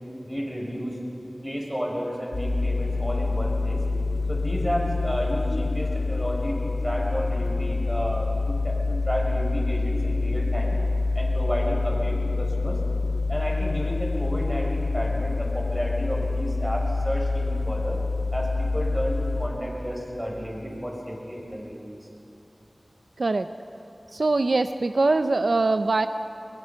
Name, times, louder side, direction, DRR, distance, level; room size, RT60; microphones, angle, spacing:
voice 1, 0.2-1.0 1.4-3.8 4.3-10.8 11.1-12.8 13.3-18.0 18.3-21.8, equal, 15° right, -2 dB, 5.7 m, -31 dB
sound 1, 2.3-19.5, left 3 dB, 70° left, 2.1 m, -26 dB
voice 2, 24.1-26.1, right 3 dB, 80° right, 9 dB, 0.5 m, -22 dB
22.5 x 22.0 x 5.9 m, 2.8 s
wide cardioid pair, 60°, 0 cm